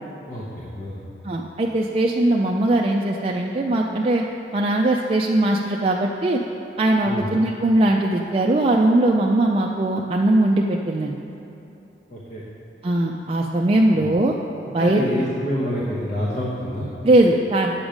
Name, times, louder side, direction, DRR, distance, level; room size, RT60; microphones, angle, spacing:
voice 1, 0.3-1.0 7.0-7.3 12.1-12.4 13.9-14.1 14.8-16.9, equal, 40° left, -5 dB, 1.0 m, -27 dB
voice 2, 1.2-4.2 4.5-6.4 6.8-11.2 12.8-14.3 14.7-15.0 17.0-17.7, right 1 dB, 30° right, -1 dB, 0.4 m, -20 dB
8.8 x 7.0 x 5.1 m, 2.9 s
head